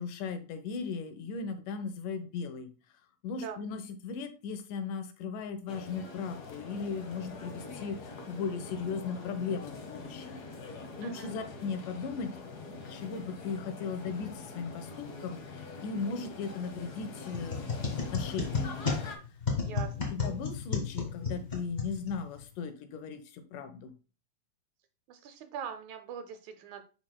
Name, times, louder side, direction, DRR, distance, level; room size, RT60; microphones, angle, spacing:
voice 1, 0.0-2.7 3.2-10.4 10.7-12.3 12.7-18.8 20.1-23.9, left 5 dB, 90° left, 8 dB, 2.5 m, -37 dB
sound 1, 5.7-19.2, left 3 dB, 70° left, 0.9 m, -44 dB
voice 2, 11.0-11.3 19.6-19.9 25.1-26.8, right 7 dB, 75° right, 7 dB, 2.1 m, -42 dB
sound 2, 17.3-22.4, left 4 dB, 30° left, 0.8 m, -33 dB
10.5 x 4.4 x 2.2 m, 0.34 s
omnidirectional pair, 3.6 m